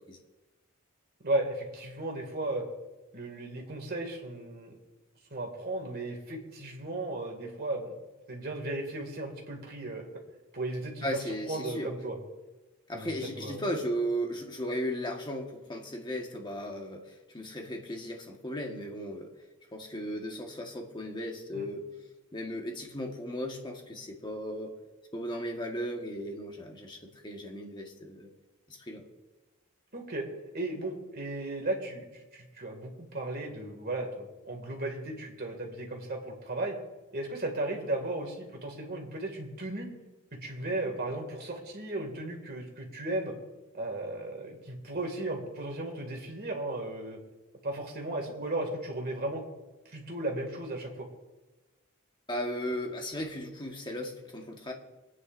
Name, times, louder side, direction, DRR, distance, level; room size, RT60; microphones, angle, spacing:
voice 1, 1.2-2.6 3.1-4.7 5.3-7.9 8.3-10.0 10.5-11.1 11.5-12.2 12.9-13.6 21.5-21.7 29.9-30.3 30.5-36.8 37.1-39.9 40.4-43.3 43.7-47.2 47.6-49.4 49.9-51.1, right 2 dB, 45° right, 2 dB, 2.3 m, -35 dB
voice 2, 11.0-11.9 12.9-19.3 19.7-21.9 22.3-24.8 25.1-28.3 28.7-29.0 52.3-54.7, equal, 20° left, 1 dB, 1.5 m, -36 dB
26.5 x 9.7 x 2.6 m, 1.1 s
head